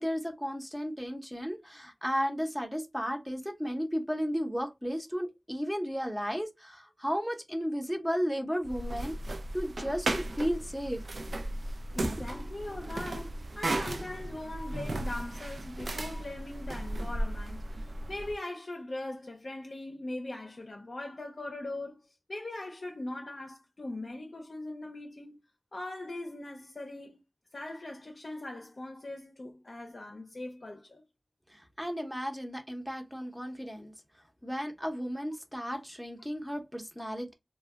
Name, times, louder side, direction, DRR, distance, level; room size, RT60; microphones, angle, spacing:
voice 1, 0.0-11.0 31.5-33.9 34.4-37.3, equal, 5° right, 0.6 m, -34 dB
sound 1, 8.6-18.4, right 1 dB, 80° right, 0.3 m, -36 dB
voice 2, 11.6-25.4 25.7-27.2 27.5-31.0, left 2 dB, 65° left, 0.5 m, -41 dB
2.1 x 2.1 x 3.5 m
wide cardioid pair, 60°, 0 cm